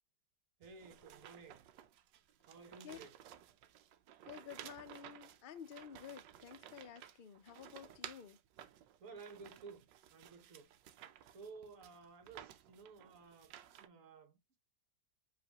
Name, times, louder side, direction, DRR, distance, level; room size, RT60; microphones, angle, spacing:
voice 1, 0.6-1.7 2.4-3.2 9.0-10.7 11.0-14.6, right 4 dB, 50° right, 1.3 m, -55 dB
sound 1, 0.6-13.9, right 11 dB, 85° right, 1.3 m, -56 dB
voice 2, 4.2-8.4, left 8 dB, 80° left, 0.4 m, -52 dB
5.1 x 3.2 x 2.9 m
omnidirectional pair, 1.9 m